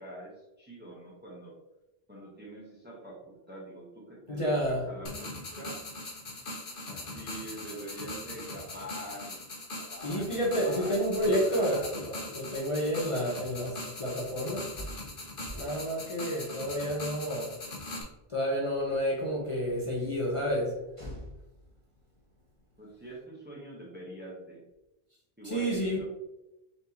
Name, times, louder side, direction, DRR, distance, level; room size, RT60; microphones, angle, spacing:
voice 1, 0.0-1.6 2.1-5.8 6.9-10.3 10.6-11.1 11.4-11.9 22.8-24.6 25.4-26.0, right 1 dB, 10° right, -4 dB, 0.8 m, -45 dB
voice 2, 4.3-4.9 10.0-14.9 15.5-17.5 18.3-21.2 25.4-26.0, equal, 35° left, -4 dB, 0.7 m, -30 dB
sound 1, 5.1-18.0, left 2 dB, 60° left, 1.1 m, -41 dB
4.0 x 3.4 x 2.8 m, 0.95 s
omnidirectional pair, 1.1 m